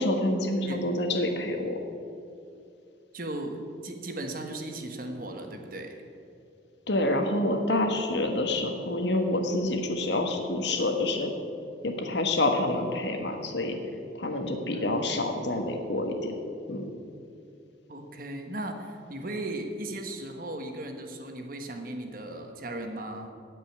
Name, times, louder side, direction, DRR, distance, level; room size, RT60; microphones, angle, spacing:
voice 1, 0.0-1.8 6.9-11.3 11.8-13.8 14.1-16.3 16.7-16.8, left 1 dB, 70° left, 4 dB, 1.5 m, -27 dB
voice 2, 3.1-6.0 14.7-15.1 17.9-23.3, right 1 dB, 50° right, 4 dB, 1.3 m, -37 dB
16.0 x 5.5 x 9.5 m, 2.5 s
head